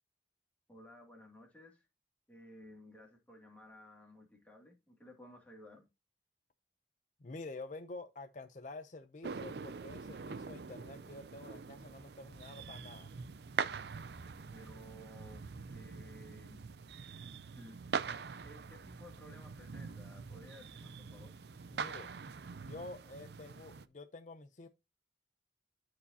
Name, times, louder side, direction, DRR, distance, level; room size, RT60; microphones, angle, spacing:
voice 1, 0.7-1.9 2.3-5.9 14.5-16.7 17.5-17.8 18.1-21.4, equal, 10° left, 2.3 m, -56 dB
voice 2, 7.2-13.1 21.7-22.1 22.5-24.7, left 2 dB, 45° left, 0.6 m, -48 dB
sound 1, 9.2-23.9, right 5 dB, 65° right, 0.5 m, -44 dB
12.5 x 4.8 x 2.8 m
head